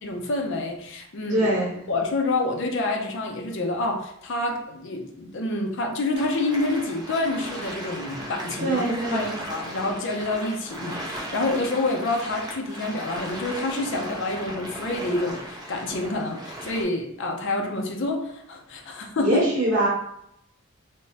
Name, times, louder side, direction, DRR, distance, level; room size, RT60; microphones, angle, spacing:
voice 1, 0.0-1.5 1.9-8.8 9.1-19.4, left 2 dB, 60° left, 2 dB, 0.5 m, -28 dB
voice 2, 1.3-1.8 8.6-9.3 19.2-19.9, right 1 dB, 50° right, -8 dB, 0.9 m, -23 dB
sound 1, 6.1-16.8, right 1 dB, 20° right, 0.4 m, -37 dB
3.3 x 2.0 x 2.7 m, 0.75 s
head